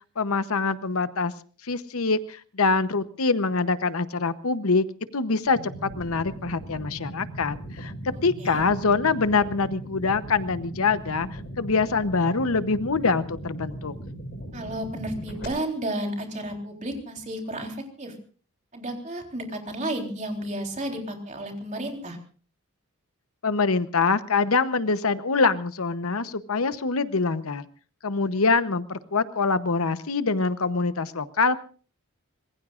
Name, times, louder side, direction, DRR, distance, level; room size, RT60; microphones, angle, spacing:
voice 1, 0.2-1.3 1.6-4.9 5.1-7.9 8.2-13.9 23.4-27.6 28.0-31.6, left 4 dB, 70° left, 13 dB, 0.9 m, -24 dB
sound 1, 5.5-15.5, right 1 dB, 50° left, 5.6 m, -38 dB
voice 2, 8.1-8.6 14.5-18.2 18.7-22.2, right 1 dB, 35° right, 3 dB, 3.7 m, -32 dB
25.5 x 21.0 x 2.5 m, 0.40 s
head